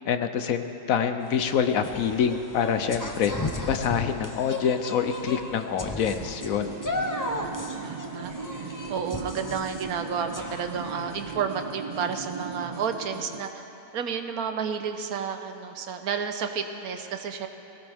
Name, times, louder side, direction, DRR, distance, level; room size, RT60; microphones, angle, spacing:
voice 1, 0.0-3.3 3.6-6.7, left 7 dB, 70° left, 8 dB, 1.1 m, -26 dB
sound 1, 1.2-11.4, left 1 dB, 20° left, 0.6 m, -36 dB
sound 2, 6.0-13.5, right 4 dB, 55° right, 0.4 m, -38 dB
voice 2, 7.8-8.3 8.9-13.6 13.9-17.5, right 6 dB, 75° right, 7 dB, 1.3 m, -31 dB
20.5 x 17.5 x 3.5 m, 2.9 s
omnidirectional pair, 1.6 m